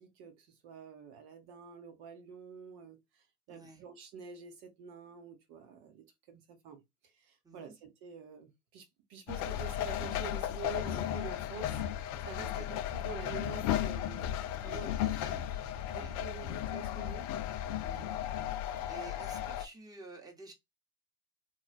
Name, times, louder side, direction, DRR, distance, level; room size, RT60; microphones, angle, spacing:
voice 1, 0.0-15.0 15.9-17.3 18.9-19.2, right 6 dB, 50° right, 0.9 m, -48 dB
voice 2, 3.5-3.8 7.4-7.7 12.4-12.7 14.6-15.3 15.9-16.1 17.8-18.2 18.9-20.5, right 3 dB, 10° right, 1.0 m, -51 dB
sound 1, 9.3-19.7, left 11 dB, 40° left, 0.4 m, -35 dB
3.1 x 2.3 x 2.3 m
hypercardioid pair, 90°, 47 cm